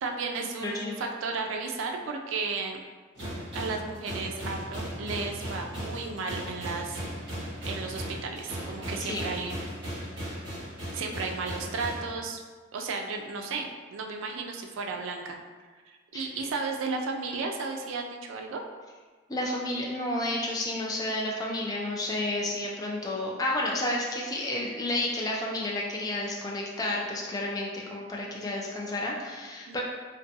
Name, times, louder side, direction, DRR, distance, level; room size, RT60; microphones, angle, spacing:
voice 1, 0.0-2.8 3.5-7.0 7.6-9.6 10.9-12.4 12.7-15.4 15.9-18.6 29.7-29.8, right 4 dB, 85° right, 2 dB, 0.3 m, -34 dB
voice 2, 0.6-1.0 9.0-9.3 16.1-16.3 19.3-29.8, left 1 dB, 20° left, -2 dB, 0.3 m, -31 dB
sound 1, 3.2-12.1, equal, 65° right, 0.8 m, -37 dB
2.5 x 2.2 x 2.6 m, 1.4 s
head